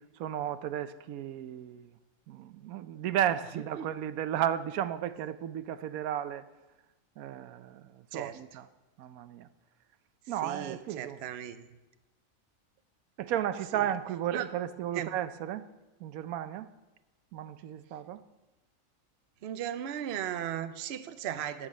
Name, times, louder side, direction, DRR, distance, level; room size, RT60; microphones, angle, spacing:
voice 1, 0.2-1.9 2.3-6.4 7.2-8.7 9.0-9.5 10.3-11.2 13.2-15.6 16.0-16.7 17.3-18.2, right 11 dB, 90° right, 13 dB, 1.1 m, -34 dB
voice 2, 3.5-3.9 8.1-8.4 10.4-11.7 13.7-13.9 14.3-14.5 14.9-15.1 19.4-21.7, right 10 dB, 60° right, 11 dB, 0.8 m, -36 dB
14.0 x 6.2 x 6.3 m, 1.1 s
omnidirectional pair, 1.5 m